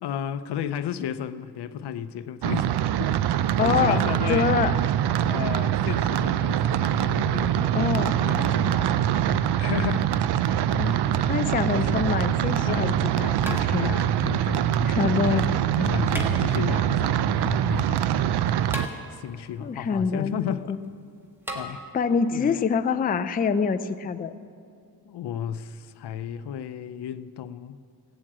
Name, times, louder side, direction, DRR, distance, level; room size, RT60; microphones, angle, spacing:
voice 1, 0.0-2.7 3.0-3.1 3.6-4.6 5.2-7.7 8.2-10.2 10.5-11.4 11.7-12.0 12.6-13.0 13.3-13.5 13.8-14.8 15.2-18.8 19.1-20.8 21.5-21.8 22.3-22.6 25.0-27.8, left 9 dB, 80° left, 0.6 m, -34 dB
sound 1, 2.4-18.9, right 10 dB, 75° right, 0.5 m, -24 dB
voice 2, 3.6-4.7 7.7-8.2 10.8-13.9 14.8-15.5 19.6-20.8 21.9-24.3, left 6 dB, 25° left, 0.4 m, -26 dB
sound 2, 12.1-12.2 13.4-14.2 16.1-16.9 18.7-19.5 21.5-21.6, equal, 5° right, 1.3 m, -36 dB
16.0 x 7.5 x 8.6 m
wide cardioid pair, 155°, 40 cm